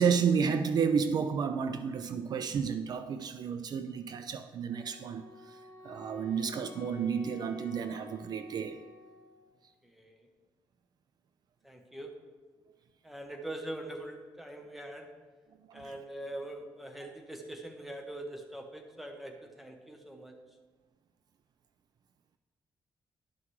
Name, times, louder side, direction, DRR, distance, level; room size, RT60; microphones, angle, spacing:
voice 1, 0.0-5.6 5.8-8.8 15.7-15.8, right 6 dB, 55° right, 9 dB, 0.4 m, -31 dB
Wind instrument woodwind instrument, 4.7-9.5, left 3 dB, 50° left, 1.4 m, -50 dB
voice 2, 9.8-10.3 11.6-12.2 13.0-15.2 15.7-20.4, right 1 dB, ahead, 3 dB, 0.8 m, -43 dB
11.0 x 5.7 x 3.1 m, 1.4 s
cardioid pair, 145°, 8 cm